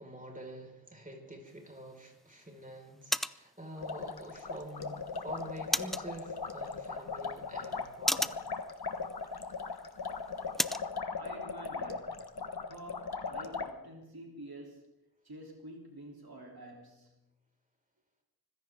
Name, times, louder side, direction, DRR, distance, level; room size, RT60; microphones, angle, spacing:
voice 1, 0.0-8.4, right 1 dB, 20° right, 5.1 m, -47 dB
sound 1, 1.5-10.9, equal, ahead, 0.5 m, -39 dB
sound 2, 3.8-13.7, left 5 dB, 75° left, 1.3 m, -39 dB
voice 2, 11.1-12.2 12.7-14.9 15.2-17.2, right 1 dB, 70° right, 3.3 m, -48 dB
24.5 x 16.0 x 3.7 m
wide cardioid pair, 55°, 38 cm